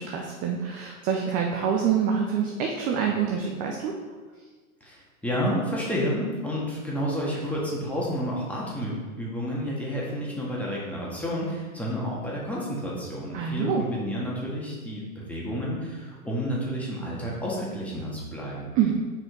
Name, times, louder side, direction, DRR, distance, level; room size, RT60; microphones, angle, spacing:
voice 1, 0.0-3.9 13.3-13.8 18.8-18.9, right 7 dB, 20° right, 1 dB, 0.4 m, -26 dB
voice 2, 4.8-18.7, equal, 5° left, -5 dB, 1.7 m, -30 dB
6.3 x 4.4 x 4.5 m, 1.4 s
hypercardioid pair, 115°, 44 cm